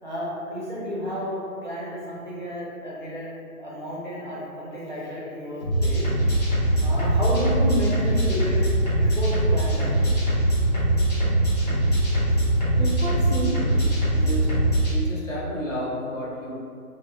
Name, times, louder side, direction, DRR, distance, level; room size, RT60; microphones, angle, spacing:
voice 1, 0.0-3.3 3.6-6.0 6.8-8.6 8.9-9.9, equal, 35° right, -8 dB, 0.5 m, -31 dB
sound 1, 5.6-14.9, right 1 dB, 25° left, 1.0 m, -22 dB
voice 2, 12.8-13.8 14.1-14.5 14.9-16.6, equal, 55° left, -7 dB, 1.4 m, -31 dB
5.3 x 2.1 x 3.2 m, 2.3 s
hypercardioid pair, 175°, 45 cm